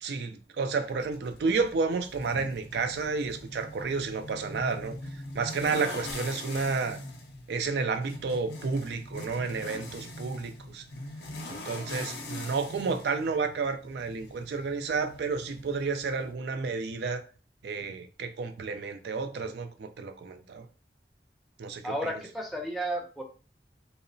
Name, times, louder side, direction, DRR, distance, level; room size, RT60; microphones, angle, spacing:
voice 1, 0.0-7.0 7.5-10.8 11.5-17.2 17.6-20.7 21.6-22.1, right 4 dB, 70° right, 0.3 m, -31 dB
sound 1, 0.8-16.3, left 2 dB, 70° left, 0.5 m, -43 dB
voice 2, 21.8-23.2, right 1 dB, ahead, 0.5 m, -32 dB
2.8 x 2.0 x 2.6 m
head